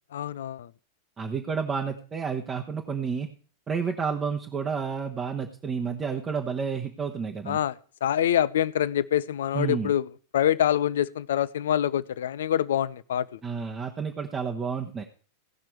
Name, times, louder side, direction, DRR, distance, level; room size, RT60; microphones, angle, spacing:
voice 1, 0.1-0.7 7.5-7.7 8.0-10.1 10.3-13.4, left 10 dB, 60° left, 0.5 m, -25 dB
voice 2, 1.2-3.3 3.7-7.6 9.5-9.9 13.4-15.0, right 6 dB, 20° right, 1.1 m, -30 dB
17.5 x 5.9 x 4.6 m
figure-of-eight pair, 90°, 0 cm